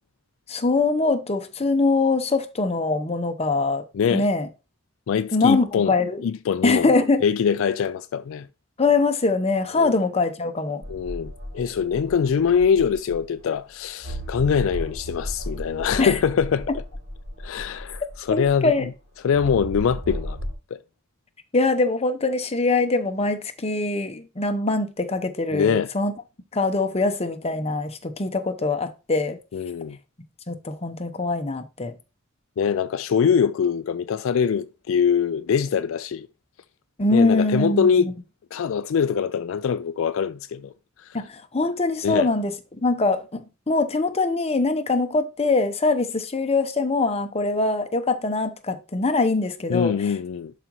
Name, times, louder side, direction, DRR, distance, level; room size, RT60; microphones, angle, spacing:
voice 1, 0.5-3.8 4.1-4.5 5.3-6.2 6.6-7.2 8.8-10.8 16.0-16.1 18.3-18.9 21.5-26.1 26.5-29.4 30.5-31.9 37.0-38.1 41.1-50.1, left 3 dB, 30° left, 0.8 m, -23 dB
voice 2, 3.9-4.3 5.1-5.9 6.2-6.9 7.2-8.5 9.7-9.9 10.9-16.8 17.4-18.7 19.2-20.4 20.7-20.8 25.5-25.9 29.5-30.0 32.6-36.3 37.1-38.1 38.5-40.7 41.0-41.1 42.0-42.3 49.7-50.5, left 7 dB, 65° left, 0.4 m, -23 dB
sound 1, 10.8-13.4 14.0-18.7 19.3-20.5, equal, 35° right, 3.0 m, -35 dB
11.0 x 5.0 x 3.0 m
head